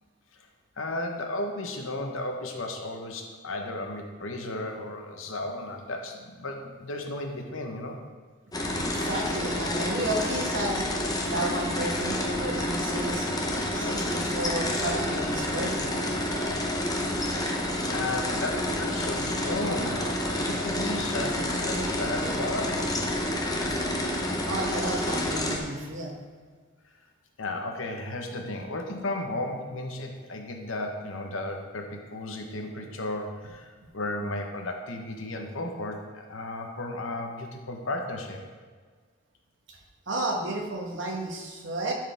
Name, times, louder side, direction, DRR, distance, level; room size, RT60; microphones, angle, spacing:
voice 1, 0.8-8.0 17.9-23.2 27.4-38.4, left 2 dB, 70° left, 3 dB, 0.9 m, -34 dB
sound 1, 8.5-25.6, left 1 dB, 20° left, 0.7 m, -29 dB
voice 2, 8.6-10.9 11.2-13.3 13.7-15.9 24.4-26.2 39.7-39.8 40.1-41.9, right 1 dB, 60° right, 1 dB, 1.2 m, -32 dB
11.0 x 4.8 x 3.4 m, 1.5 s
head